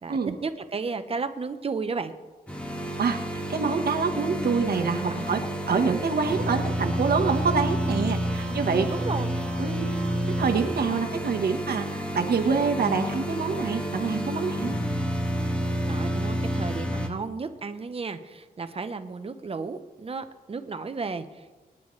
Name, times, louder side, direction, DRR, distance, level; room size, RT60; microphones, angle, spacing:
voice 1, 0.0-2.1 5.1-5.3 8.4-9.3 15.9-21.6, right 4 dB, 35° right, 9 dB, 0.9 m, -34 dB
sound 1, 2.5-17.1, equal, 5° left, 1.4 m, -29 dB
voice 2, 3.0-8.9 9.6-9.9 10.4-14.8, right 5 dB, 80° right, 3 dB, 1.3 m, -26 dB
25.0 x 10.0 x 3.3 m, 1.2 s
wide cardioid pair, 145°, 16 cm